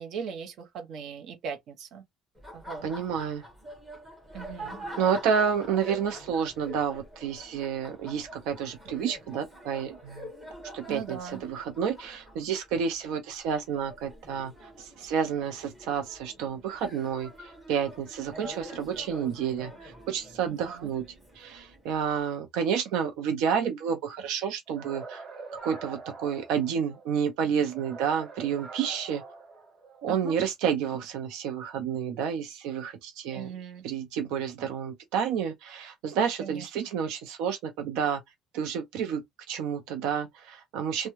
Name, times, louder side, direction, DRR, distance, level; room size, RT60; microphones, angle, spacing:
voice 1, 0.0-2.0 2.5-2.8 4.3-4.8 10.9-11.4 20.6-20.9 30.1-30.3 33.3-33.8 36.4-36.6, right 6 dB, 55° right, 0.8 m, -39 dB
Laughter, 2.3-22.2, equal, 15° right, 1.4 m, -46 dB
voice 2, 2.8-3.4 5.0-10.3 10.7-21.1 21.3-25.2 25.6-29.2 30.0-33.5 33.8-38.2 38.5-41.1, right 7 dB, 85° right, 0.5 m, -30 dB
sound 1, 24.7-27.1 27.7-30.1, right 4 dB, 40° right, 1.3 m, -44 dB
3.3 x 2.2 x 3.0 m
cardioid pair, 150°, 0 cm